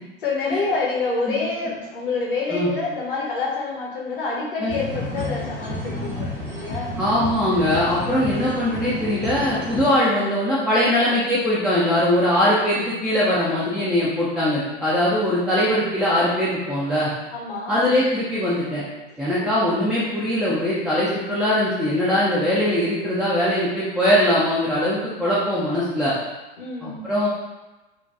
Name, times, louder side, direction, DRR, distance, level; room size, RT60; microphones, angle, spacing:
voice 1, 0.2-7.0 17.3-17.9 19.1-19.6 26.6-27.0, left 4 dB, 60° left, -3 dB, 0.9 m, -27 dB
sound 1, 4.7-9.9, left 1 dB, 85° left, 1.3 m, -31 dB
voice 2, 7.0-17.1 17.7-18.8 19.2-26.1 26.8-27.3, left 1 dB, ahead, -8 dB, 0.4 m, -21 dB
4.0 x 2.2 x 2.3 m, 1.1 s
figure-of-eight pair, 80°, 30 cm